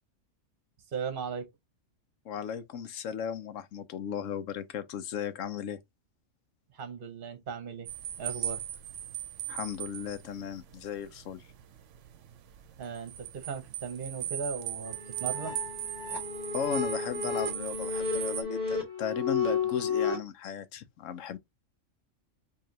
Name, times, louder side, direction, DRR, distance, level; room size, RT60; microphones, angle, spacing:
voice 1, 0.9-1.5 6.7-8.6 12.8-15.6, right 6 dB, 45° right, 1.0 m, -37 dB
voice 2, 2.2-5.8 8.4-8.5 9.5-11.5 16.5-21.4, left 8 dB, 80° left, 1.0 m, -36 dB
sound 1, 7.9-18.4, right 11 dB, 75° right, 0.9 m, -38 dB
sound 2, 14.8-20.2, left 5 dB, 15° left, 2.2 m, -32 dB
4.8 x 2.8 x 2.7 m
omnidirectional pair, 1.3 m